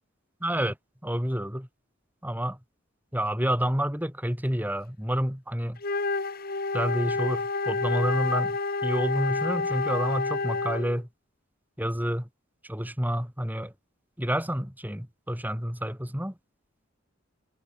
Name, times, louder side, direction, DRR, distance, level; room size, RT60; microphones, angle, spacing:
voice 1, 0.4-0.8 1.0-1.7 2.2-2.6 3.1-5.8 6.7-11.1 11.8-12.3 12.6-13.7 14.2-16.3, equal, 10° right, 5.2 m, -29 dB
Wind instrument woodwind instrument, 5.8-11.0, left 3 dB, 50° left, 2.4 m, -29 dB
head